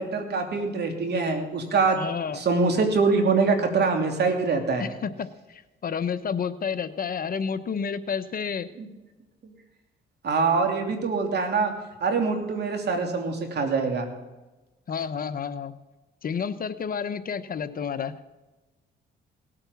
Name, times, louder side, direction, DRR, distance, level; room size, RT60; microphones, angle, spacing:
voice 1, 0.0-2.0 2.4-4.9 8.8-8.9 10.2-11.7 12.0-14.1, right 4 dB, 55° right, 4 dB, 3.0 m, -24 dB
voice 2, 2.0-2.4 4.8-8.7 14.9-15.7 16.2-18.1, left 6 dB, 45° left, 11 dB, 0.9 m, -30 dB
18.5 x 8.9 x 7.1 m, 1.1 s
cardioid pair, 90°, 20 cm